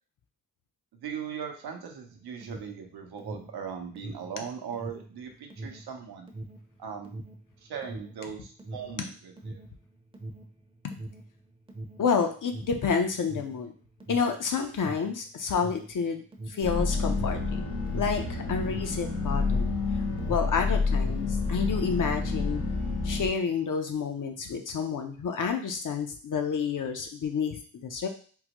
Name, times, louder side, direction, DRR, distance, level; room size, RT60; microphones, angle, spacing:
voice 1, 0.9-6.3 6.8-7.2 7.6-9.6, right 7 dB, 80° right, 3 dB, 0.7 m, -39 dB
Alarm, 2.1-19.9 20.1-21.4, right 2 dB, 15° right, 0.6 m, -42 dB
voice 2, 12.0-13.7 14.1-17.4 17.9-20.0 20.3-22.6 23.0-28.1, left 6 dB, 55° left, 5 dB, 0.7 m, -29 dB
sound 1, 16.6-23.3, left 3 dB, 85° left, 1.0 m, -29 dB
3.8 x 2.1 x 2.9 m, 0.42 s
cardioid pair, 65°, 38 cm